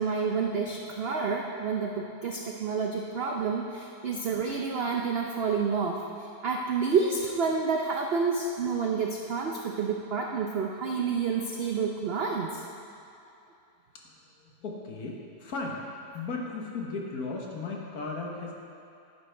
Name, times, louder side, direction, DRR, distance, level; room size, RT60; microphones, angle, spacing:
voice 1, 0.0-12.6, right 5 dB, 80° right, 1 dB, 0.5 m, -29 dB
voice 2, 14.0-15.8 16.1-18.5, left 3 dB, 60° left, -1 dB, 1.6 m, -36 dB
11.0 x 9.9 x 3.4 m, 2.7 s
omnidirectional pair, 1.8 m